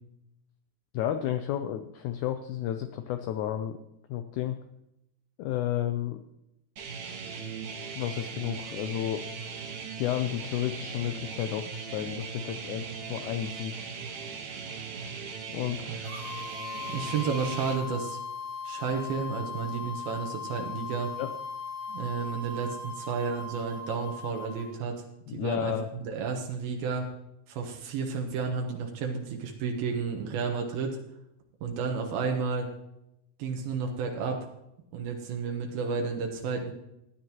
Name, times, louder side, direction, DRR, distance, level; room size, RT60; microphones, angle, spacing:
voice 1, 0.9-3.8 4.1-4.6 5.4-6.2 7.9-9.2 10.0-13.9 15.5-16.0 21.2-21.3 25.3-25.9, left 11 dB, 85° left, 8 dB, 1.7 m, -32 dB
sound 1, 6.8-17.8, right 5 dB, 60° right, 2.4 m, -39 dB
sound 2, 16.0-24.7, left 4 dB, 70° left, 3.6 m, -38 dB
voice 2, 16.9-18.2 18.6-21.1 21.9-25.0 25.3-25.7 26.0-27.1 27.5-31.0 31.6-32.7 33.4-34.4 34.9-36.7, right 5 dB, 85° right, 2 dB, 3.0 m, -32 dB
15.5 x 10.0 x 3.0 m, 0.85 s
omnidirectional pair, 4.2 m